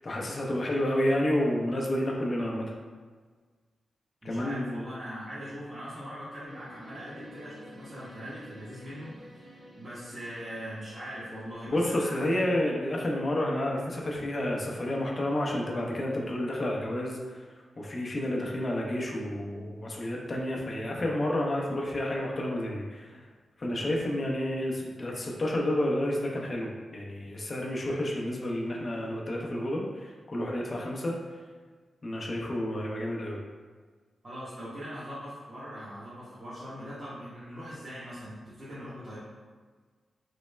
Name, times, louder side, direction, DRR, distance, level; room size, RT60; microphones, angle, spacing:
voice 1, 0.0-2.6 4.2-4.8 11.7-17.5 17.8-23.2 23.6-31.2 32.0-33.4, left 1 dB, 40° left, -2 dB, 0.5 m, -30 dB
voice 2, 4.2-9.1 9.4-12.5 34.2-39.2, equal, 35° right, -13 dB, 1.1 m, -41 dB
sound 1, 6.4-11.5, equal, 90° right, 1.1 m, -51 dB
3.1 x 2.0 x 3.2 m, 1.5 s
cardioid pair, 70°, 0 cm